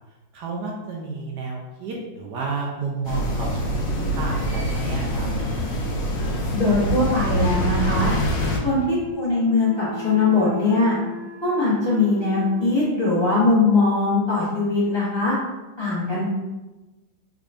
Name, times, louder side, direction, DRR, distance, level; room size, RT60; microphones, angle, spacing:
voice 1, 0.3-3.8 4.2-5.3, right 3 dB, 75° right, -2 dB, 1.0 m, -31 dB
sound 1, 3.0-8.6, equal, 70° left, 1.3 m, -25 dB
voice 2, 6.5-8.1 8.6-10.9 11.4-15.3 15.8-16.2, left 3 dB, 20° left, -10 dB, 0.7 m, -21 dB
Wind instrument woodwind instrument, 7.2-13.1, left 2 dB, 60° right, 0.5 m, -37 dB
3.6 x 3.5 x 2.4 m, 1.1 s
omnidirectional pair, 2.2 m